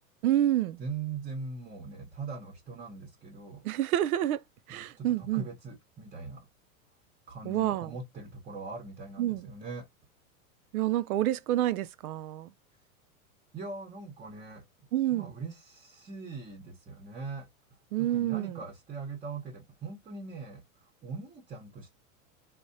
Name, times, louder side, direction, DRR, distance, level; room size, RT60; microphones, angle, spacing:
voice 1, 0.2-0.8 3.6-4.4 4.7-5.5 7.4-7.9 9.2-9.5 10.7-12.5 14.9-15.3 17.9-18.6, right 13 dB, 80° right, 0.5 m, -28 dB
voice 2, 0.8-3.6 4.7-6.5 7.3-9.9 13.5-14.6 15.1-17.5 18.0-20.6 21.0-22.0, right 4 dB, 20° right, 0.7 m, -41 dB
3.3 x 2.2 x 2.6 m
hypercardioid pair, 115°, 43 cm